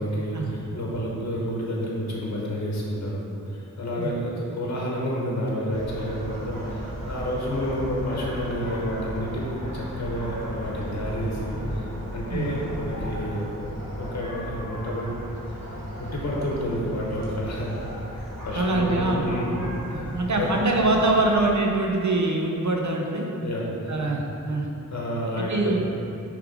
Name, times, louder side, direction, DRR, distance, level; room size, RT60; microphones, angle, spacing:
voice 1, 0.0-13.5 14.0-15.1 15.5-15.6 16.0-19.6 19.9-20.1 20.4-20.5 23.4-24.1 24.9-25.9, equal, 50° left, -4 dB, 1.0 m, -30 dB
sound 1, 5.7-21.5, equal, 80° right, 1.3 m, -35 dB
voice 2, 18.5-19.3 19.9-23.3 23.9-24.7 25.4-25.8, right 2 dB, 60° right, 0 dB, 0.8 m, -24 dB
6.5 x 3.4 x 5.1 m, 2.8 s
wide cardioid pair, 75°, 33 cm